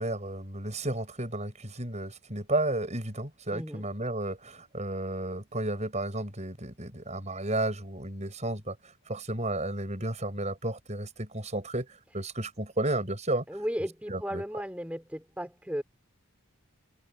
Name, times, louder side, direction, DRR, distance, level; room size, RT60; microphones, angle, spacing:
voice 1, 0.0-8.8 9.1-13.4 14.1-14.4, right 2 dB, 30° right, 6.5 m, -32 dB
voice 2, 3.5-3.8 13.5-15.8, equal, 5° right, 4.4 m, -35 dB
head